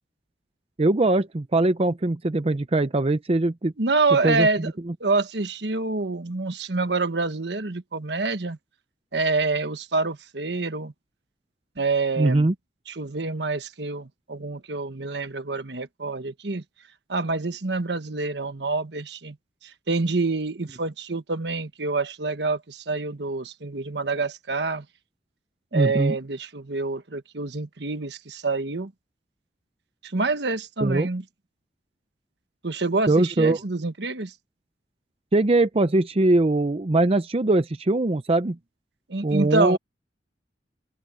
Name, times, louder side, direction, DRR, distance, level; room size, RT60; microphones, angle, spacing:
voice 1, 0.8-3.7 4.2-4.7 12.2-12.5 25.7-26.2 30.8-31.1 33.1-33.6 35.3-38.6 39.2-39.8, right 2 dB, 35° right, 0.6 m, -21 dB
voice 2, 3.8-4.7 5.0-8.6 9.1-10.9 11.8-12.5 12.9-16.6 17.1-19.4 19.6-24.8 25.7-28.9 30.0-31.2 32.6-34.3 39.1-39.8, right 3 dB, 65° right, 1.3 m, -27 dB
open air
head